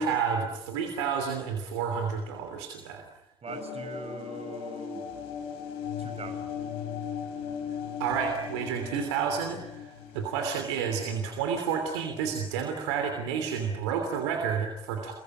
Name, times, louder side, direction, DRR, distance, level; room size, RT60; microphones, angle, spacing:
voice 1, 0.0-3.0 8.0-15.1, right 6 dB, 80° right, 4 dB, 3.1 m, -30 dB
voice 2, 3.4-5.1 6.0-6.6, right 4 dB, 45° right, 8 dB, 5.3 m, -42 dB
sound 1, 3.5-11.4, left 7 dB, 75° left, 3.9 m, -38 dB
29.5 x 22.5 x 8.9 m, 0.81 s
figure-of-eight pair, 40°, 14 cm